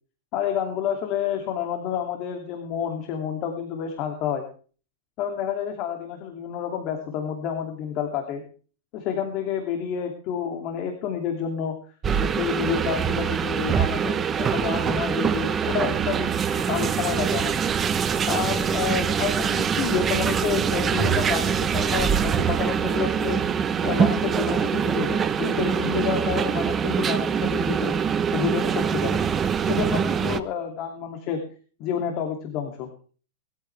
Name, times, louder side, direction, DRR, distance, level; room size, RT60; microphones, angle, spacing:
voice 1, 0.3-4.4 5.2-8.4 8.9-11.7 12.2-17.6 18.3-23.4 23.8-27.9 28.3-29.2 29.6-31.4 31.8-33.0, left 8 dB, 35° left, 4 dB, 2.6 m, -29 dB
sound 1, 12.0-30.4, right 7 dB, 20° right, 0.9 m, -24 dB
21.0 x 13.5 x 3.4 m, 0.39 s
supercardioid pair, 160°, 0 cm